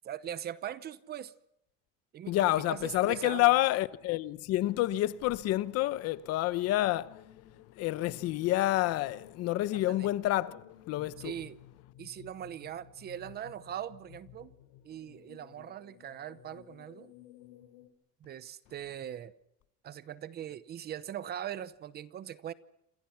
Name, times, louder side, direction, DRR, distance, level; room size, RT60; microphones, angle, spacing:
voice 1, 0.0-1.3 2.1-3.5 9.7-10.1 11.2-11.6 12.0-14.5 14.8-17.1 18.2-19.3 19.8-22.5, right 10 dB, 30° right, 0.9 m, -41 dB
voice 2, 2.3-7.2 7.8-11.3, left 16 dB, 50° left, 0.9 m, -28 dB
sound 1, 6.6-17.9, left 12 dB, 75° left, 4.1 m, -55 dB
28.5 x 26.0 x 5.9 m
cardioid pair, 175°, 33 cm